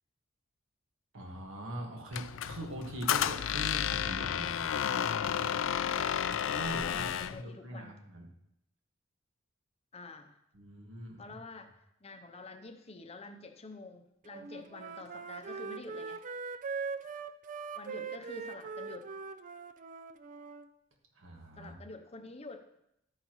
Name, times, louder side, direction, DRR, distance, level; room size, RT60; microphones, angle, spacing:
voice 1, 1.1-4.7 6.5-8.3 10.5-11.4 21.1-21.7, right 1 dB, 75° right, 1 dB, 1.7 m, -42 dB
Squeak, 2.1-7.4, left 9 dB, 70° left, 0.4 m, -32 dB
voice 2, 5.8-6.3 6.8-7.9 9.9-10.4 11.2-11.7 12.0-16.2 17.7-19.1 21.6-22.7, left 3 dB, 30° left, 7 dB, 0.7 m, -48 dB
Wind instrument woodwind instrument, 14.3-20.7, right 5 dB, 40° right, 0.4 m, -41 dB
12.5 x 9.5 x 3.1 m, 0.81 s
head